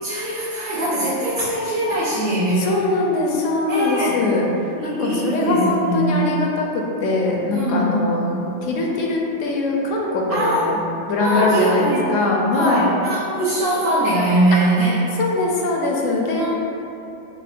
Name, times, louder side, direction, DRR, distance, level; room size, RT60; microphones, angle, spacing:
voice 1, 0.0-2.6 3.7-4.1 4.8-6.1 7.5-8.4 10.3-10.7 11.2-12.1 12.5-15.0 16.4-16.5, right 1 dB, 75° right, -15 dB, 1.5 m, -21 dB
voice 2, 2.6-4.5 4.8-8.3 8.6-10.8 11.1-12.9 15.2-16.5, left 2 dB, 80° left, -1 dB, 0.9 m, -21 dB
6.2 x 2.1 x 2.5 m, 2.9 s
omnidirectional pair, 1.3 m